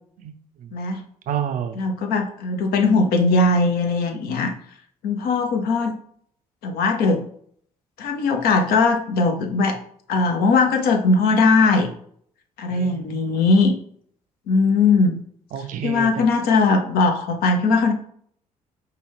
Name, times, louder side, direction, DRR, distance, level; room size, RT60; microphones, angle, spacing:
voice 1, 0.2-0.7 1.3-1.8 12.7-13.5 15.5-16.2, right 8 dB, 45° right, 9 dB, 0.5 m, -30 dB
voice 2, 1.8-4.5 5.0-5.9 6.6-7.2 8.0-9.8 10.1-11.9 12.6-13.7 14.5-15.2 15.8-17.9, left 3 dB, 55° left, 4 dB, 0.7 m, -19 dB
5.0 x 2.2 x 3.4 m, 0.62 s
figure-of-eight pair, 45°, 18 cm